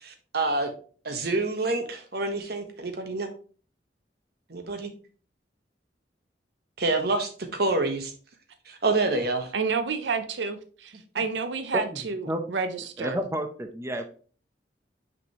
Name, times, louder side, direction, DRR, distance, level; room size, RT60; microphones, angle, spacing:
voice 1, 0.0-0.7 1.0-3.3 4.5-4.9 6.8-8.1 8.7-9.5, right 2 dB, 65° right, 6 dB, 1.2 m, -27 dB
voice 2, 9.5-13.2, right 5 dB, 90° right, 9 dB, 0.6 m, -30 dB
voice 3, 13.0-14.0, equal, 15° right, 6 dB, 0.7 m, -30 dB
6.1 x 5.2 x 3.0 m, 0.40 s
head